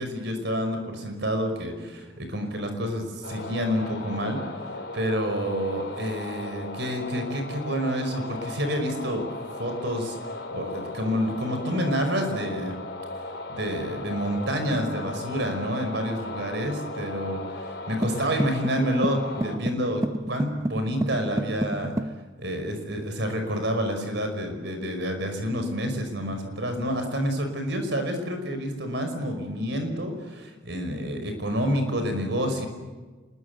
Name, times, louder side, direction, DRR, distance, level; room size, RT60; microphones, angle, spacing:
voice 1, 0.0-4.4 4.9-9.3 9.6-10.2 10.5-12.8 13.5-17.4 17.9-21.9 22.4-32.7, equal, 60° right, 6 dB, 5.5 m, -28 dB
sound 1, 3.2-19.6, left 2 dB, 60° left, 3.5 m, -37 dB
sound 2, 18.0-22.2, right 1 dB, 15° right, 0.7 m, -30 dB
26.5 x 22.0 x 8.1 m, 1.3 s
head